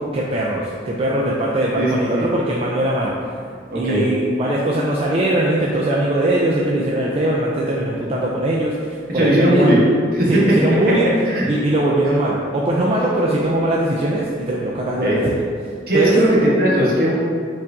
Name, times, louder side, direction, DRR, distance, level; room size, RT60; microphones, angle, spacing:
voice 1, 0.0-3.4 3.7-9.8 10.3-11.1 11.5-16.1, right 1 dB, 35° right, -4 dB, 0.3 m, -21 dB
voice 2, 1.8-2.3 3.7-4.1 9.1-9.8 10.1-10.3 11.3-11.5 15.0-15.2 15.9-17.1, equal, 55° right, -5 dB, 1.0 m, -17 dB
5.4 x 2.6 x 3.5 m, 2.1 s
head